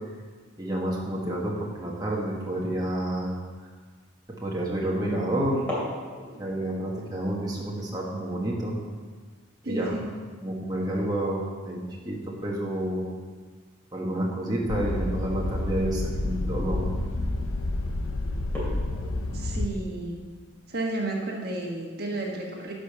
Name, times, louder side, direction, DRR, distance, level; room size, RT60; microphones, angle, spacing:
voice 1, 0.6-3.3 4.4-5.6 6.4-8.8 9.6-9.9 10.4-11.8 12.0-13.0 13.9-16.9, right 1 dB, 20° right, -4 dB, 1.3 m, -29 dB
sound 1, 4.1-4.3 5.5-12.0 12.2-12.3 12.7-13.1 14.1-14.3 14.9-15.0 15.5-15.6 16.0-16.3 16.9-17.3 17.7-17.8 18.4-20.7, left 1 dB, 10° left, 2.5 m, -41 dB
voice 2, 9.6-10.1 19.3-20.2 20.7-22.7, right 2 dB, 50° right, 0 dB, 1.5 m, -32 dB
sound 2, 14.7-19.7, left 2 dB, 85° left, 0.7 m, -29 dB
11.0 x 5.2 x 6.6 m, 1.5 s
head